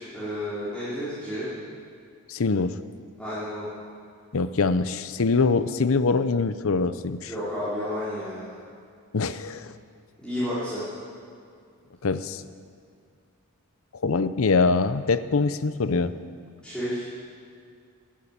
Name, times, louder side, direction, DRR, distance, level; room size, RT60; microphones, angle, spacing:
voice 1, 0.0-1.5 3.2-3.7 7.2-8.5 10.2-10.8 16.6-17.0, equal, 5° left, -14 dB, 4.0 m, -31 dB
voice 2, 2.3-2.8 4.3-7.3 9.1-9.7 12.0-12.4 14.0-16.1, left 4 dB, 65° left, 13 dB, 0.6 m, -23 dB
12.0 x 10.5 x 8.8 m, 2.3 s
head